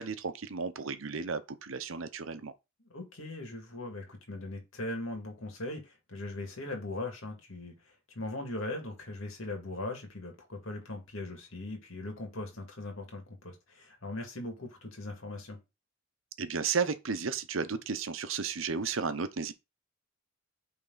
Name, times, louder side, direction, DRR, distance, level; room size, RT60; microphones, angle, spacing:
voice 1, 0.0-2.5 16.4-19.5, right 5 dB, 75° right, 0.8 m, -33 dB
voice 2, 2.9-15.6, left 2 dB, 80° left, 2.3 m, -40 dB
8.9 x 3.6 x 3.9 m
head